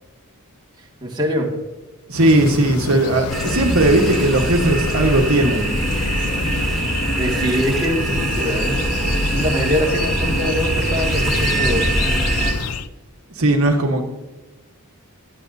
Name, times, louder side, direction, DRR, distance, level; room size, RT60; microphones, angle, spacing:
voice 1, 1.0-1.5 6.9-8.8 9.0-11.9, equal, 20° right, -2 dB, 1.9 m, -23 dB
sound 1, 2.1-12.9, left 6 dB, 80° left, 0.5 m, -29 dB
voice 2, 2.1-5.7 6.4-6.7 13.3-14.0, right 1 dB, 70° right, 2 dB, 1.3 m, -17 dB
sound 2, 3.3-12.5, right 1 dB, ahead, 2.2 m, -22 dB
16.5 x 11.5 x 2.7 m, 1.1 s
head